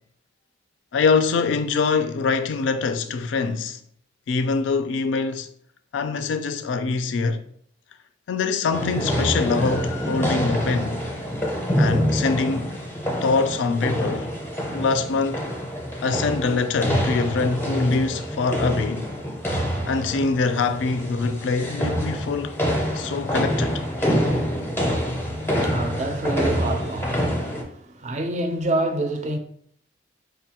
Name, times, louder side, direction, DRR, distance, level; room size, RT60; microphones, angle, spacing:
voice 1, 0.9-3.8 4.3-5.5 5.9-7.4 8.3-11.0 11.7-12.7 13.2-14.3 14.7-15.4 16.0-19.1 19.9-22.6 22.9-23.8, left 4 dB, 85° left, 0.3 m, -24 dB
sound 1, 8.7-27.6, equal, 10° left, 0.5 m, -26 dB
voice 2, 25.4-29.4, right 2 dB, 40° right, 0.4 m, -27 dB
4.9 x 2.2 x 2.8 m
head